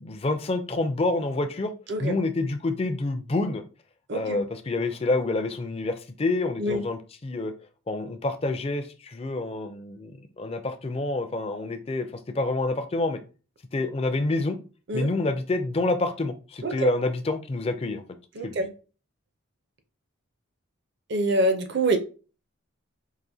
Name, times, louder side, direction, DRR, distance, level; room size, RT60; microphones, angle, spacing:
voice 1, 0.0-1.7 2.0-3.6 4.1-7.5 7.9-12.1 12.3-13.2 13.7-14.6 14.9-18.0 18.4-18.5, left 2 dB, 30° left, 8 dB, 0.4 m, -27 dB
voice 2, 4.1-4.4 6.6-6.8 14.9-15.1 16.6-16.9 18.4-18.7 21.1-22.0, right 2 dB, 50° right, 7 dB, 0.6 m, -25 dB
4.9 x 2.6 x 2.7 m, 0.35 s
head